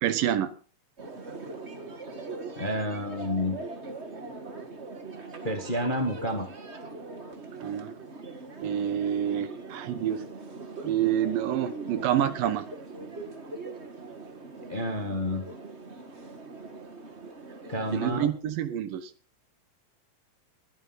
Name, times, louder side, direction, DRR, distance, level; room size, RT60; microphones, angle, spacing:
voice 1, 0.0-0.6 7.6-8.0 8.6-10.2 10.8-12.7 17.9-19.1, right 10 dB, 85° right, 12 dB, 2.9 m, -27 dB
sound 1, 1.0-18.2, right 3 dB, 35° right, 1.1 m, -41 dB
voice 2, 2.6-3.6 5.4-6.5 14.7-15.4 17.7-18.3, left 1 dB, 25° left, 3 dB, 1.1 m, -29 dB
21.5 x 9.0 x 4.1 m, 0.38 s
omnidirectional pair, 3.8 m